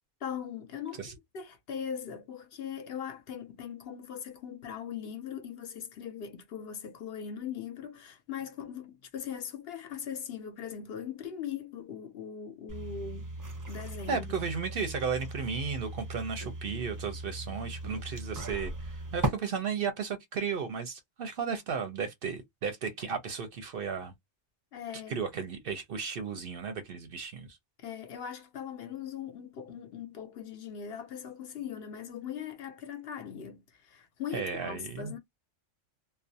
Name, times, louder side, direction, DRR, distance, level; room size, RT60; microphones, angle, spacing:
voice 1, 0.2-13.3 13.7-14.4 24.7-25.1 27.8-35.2, left 8 dB, 65° left, 0.7 m, -40 dB
sound 1, 12.7-19.3, right 2 dB, 25° right, 0.4 m, -38 dB
voice 2, 14.1-24.1 25.1-27.6 34.3-35.1, right 6 dB, 60° right, 0.7 m, -34 dB
2.4 x 2.0 x 2.6 m
omnidirectional pair, 1.2 m